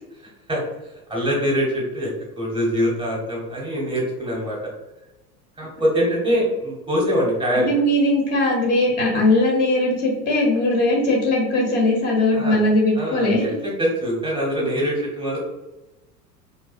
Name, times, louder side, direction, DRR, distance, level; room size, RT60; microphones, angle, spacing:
voice 1, 0.2-2.1 2.3-4.6 5.6-7.7 12.3-12.6 12.9-13.5 13.8-15.4, equal, 10° right, -4 dB, 0.8 m, -23 dB
voice 2, 7.5-13.4, left 1 dB, 20° left, -1 dB, 0.5 m, -19 dB
2.4 x 2.2 x 2.4 m, 1.0 s
figure-of-eight pair, 80°, 48 cm